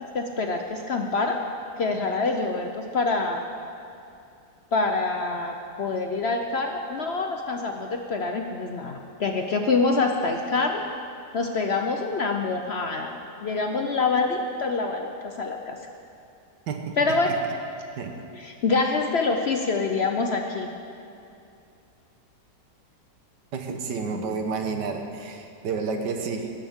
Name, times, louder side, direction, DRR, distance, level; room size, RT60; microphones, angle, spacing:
voice 1, 0.1-1.4 1.8-3.5 4.7-10.8 11.3-13.1 13.4-15.8 17.0-17.4 18.4-20.7, left 3 dB, 55° left, 3 dB, 0.7 m, -26 dB
voice 2, 16.7-17.0 17.2-17.3 18.0-18.2 23.5-26.5, right 5 dB, 90° right, 5 dB, 1.7 m, -30 dB
17.5 x 12.5 x 3.7 m, 2.6 s
omnidirectional pair, 1.8 m